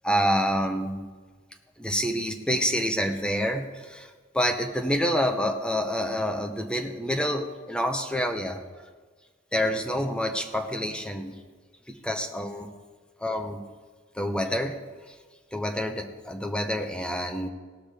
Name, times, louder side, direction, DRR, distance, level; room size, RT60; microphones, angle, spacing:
voice 1, 0.0-1.0 1.8-8.6 9.5-11.4 11.9-12.7 13.2-13.6 14.1-14.8 15.5-17.5, equal, 5° left, 4 dB, 0.9 m, -27 dB
18.0 x 6.1 x 5.1 m, 1.4 s
head